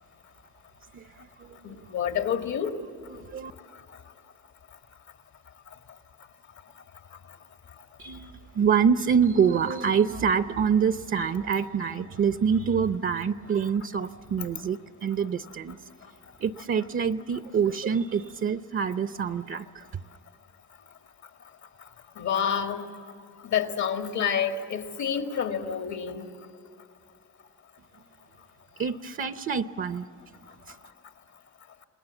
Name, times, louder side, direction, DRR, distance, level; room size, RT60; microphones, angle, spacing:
voice 1, 0.9-1.8 3.1-3.5 8.0-15.8 16.4-20.0 28.8-30.0 30.7-30.8, right 7 dB, 45° right, 11 dB, 0.7 m, -26 dB
voice 2, 1.9-2.8 22.2-22.9 23.4-26.2, left 8 dB, 70° left, 6 dB, 1.9 m, -28 dB
28.0 x 20.0 x 7.1 m, 2.4 s
cardioid pair, 90°, 30 cm